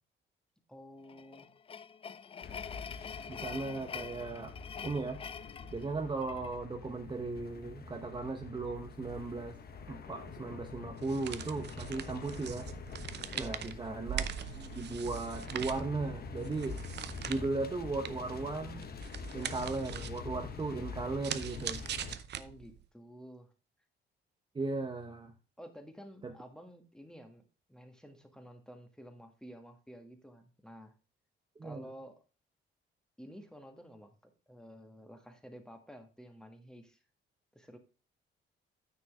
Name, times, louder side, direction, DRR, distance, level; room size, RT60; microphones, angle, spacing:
voice 1, 0.7-1.5 13.3-13.8 22.3-23.5 25.6-27.4 27.7-30.9 31.6-32.2 33.2-37.0 37.5-37.8, equal, 5° left, 6 dB, 1.7 m, -51 dB
sound 1, 1.0-6.6, left 6 dB, 30° left, 0.3 m, -45 dB
sound 2, 2.4-22.2, left 5 dB, 50° left, 1.2 m, -46 dB
voice 2, 3.3-4.5 4.8-5.2 5.7-9.6 9.9-12.7 13.4-14.3 14.6-16.8 17.3-18.8 19.3-21.8 24.5-25.3 26.2-26.3 31.6-31.8, right 3 dB, 25° right, 4 dB, 0.9 m, -37 dB
sound 3, 11.0-22.9, right 9 dB, 60° right, 0.7 m, -42 dB
9.6 x 6.2 x 3.5 m, 0.34 s
cardioid pair, 90°, 20 cm